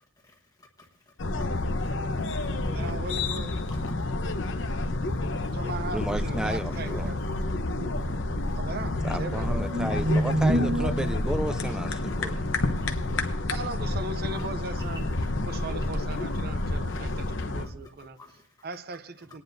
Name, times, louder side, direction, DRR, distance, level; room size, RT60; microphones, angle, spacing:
voice 1, 0.2-0.9 1.8-1.9 2.4-2.5 5.1-5.2 7.9-8.0 8.4-8.6 12.8-13.2 14.3-14.4 18.2-18.5, left 2 dB, 20° left, 1.2 m, -52 dB
sound 1, 1.2-17.7, left 2 dB, 70° left, 0.9 m, -29 dB
voice 2, 2.7-3.5 5.5-7.2 8.6-9.6 13.5-15.1 15.5-18.2 18.6-19.4, right 3 dB, 55° right, 0.6 m, -38 dB
voice 3, 5.9-7.2 9.0-12.4, right 1 dB, 5° right, 0.4 m, -33 dB
sound 2, 7.0-11.0, right 1 dB, 85° right, 1.2 m, -29 dB
28.0 x 9.5 x 2.7 m
head